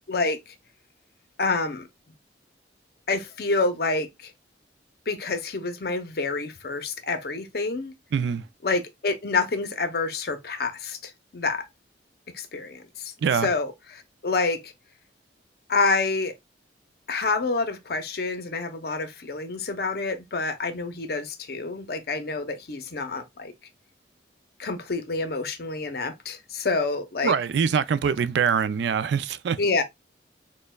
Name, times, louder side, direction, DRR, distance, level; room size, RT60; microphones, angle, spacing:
voice 1, 0.1-0.4 1.4-1.9 3.1-4.3 5.1-7.9 8.6-11.7 12.3-13.1 13.4-14.7 15.7-16.3 17.1-23.5 24.6-27.3 29.6-29.8, left 3 dB, 55° left, 0.6 m, -28 dB
voice 2, 8.1-8.5 13.2-13.5 27.2-29.6, right 6 dB, 70° right, 0.3 m, -24 dB
6.3 x 2.2 x 2.2 m
head